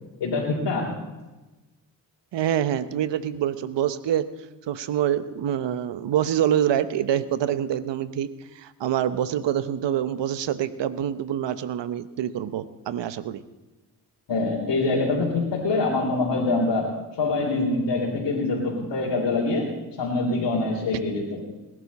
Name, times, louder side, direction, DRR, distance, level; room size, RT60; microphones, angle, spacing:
voice 1, 0.2-1.0 14.3-16.9 17.2-19.7 20.0-21.4, left 3 dB, 70° left, -3 dB, 3.6 m, -24 dB
voice 2, 2.3-4.3 4.7-8.3 8.6-13.4, right 10 dB, 70° right, 13 dB, 1.0 m, -26 dB
20.5 x 11.5 x 4.2 m, 1.1 s
supercardioid pair, 50°, 44 cm